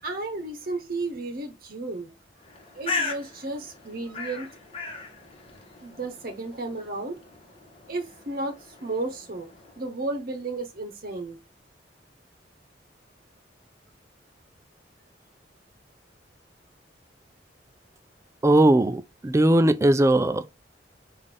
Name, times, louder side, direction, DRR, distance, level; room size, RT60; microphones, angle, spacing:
voice 1, 0.0-2.2 2.7-4.5 5.8-7.2 7.9-9.5 9.8-11.4, right 2 dB, 55° right, 0.9 m, -33 dB
Bird, 2.4-10.0, left 3 dB, 30° left, 1.3 m, -38 dB
voice 2, 18.4-20.5, right 1 dB, 15° right, 0.4 m, -19 dB
5.6 x 2.5 x 3.4 m
head